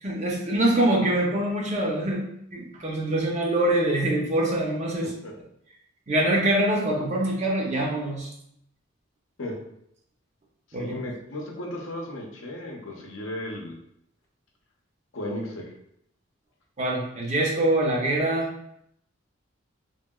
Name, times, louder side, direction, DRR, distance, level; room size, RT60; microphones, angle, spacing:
voice 1, 0.0-2.2 2.5-5.1 6.1-8.3 10.7-11.0 16.8-18.5, right 1 dB, 35° right, -2 dB, 0.6 m, -24 dB
voice 2, 5.0-5.3 9.4-9.6 10.8-13.8 15.1-15.7, left 1 dB, 75° left, 0 dB, 0.6 m, -35 dB
3.0 x 2.7 x 2.2 m, 0.73 s
head